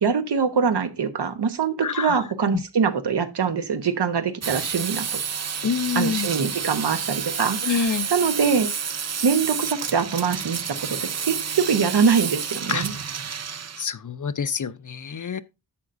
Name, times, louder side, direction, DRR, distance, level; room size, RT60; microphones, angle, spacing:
voice 1, 0.0-5.0 5.9-8.7 9.2-12.9, right 6 dB, 75° right, 1.1 m, -23 dB
voice 2, 1.8-2.2 5.6-6.3 7.6-8.1 12.7-12.9 13.8-15.4, left 6 dB, 50° left, 0.7 m, -26 dB
sound 1, 4.4-13.9, right 7 dB, 40° right, 0.6 m, -30 dB
11.0 x 7.6 x 2.6 m
wide cardioid pair, 70°, 40 cm